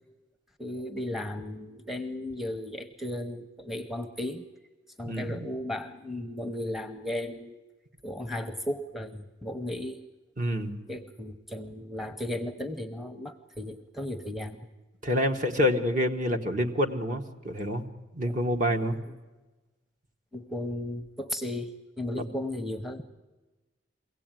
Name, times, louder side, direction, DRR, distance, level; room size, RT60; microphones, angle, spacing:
voice 1, 0.6-4.4 5.0-7.6 8.0-10.1 10.9-14.6 18.2-18.4 19.0-19.1 20.3-23.0, left 1 dB, ahead, 5 dB, 0.8 m, -35 dB
voice 2, 5.0-5.5 10.4-10.8 15.0-17.8 18.1-19.0, equal, 45° right, 6 dB, 1.4 m, -27 dB
23.0 x 17.0 x 9.1 m, 1.2 s
head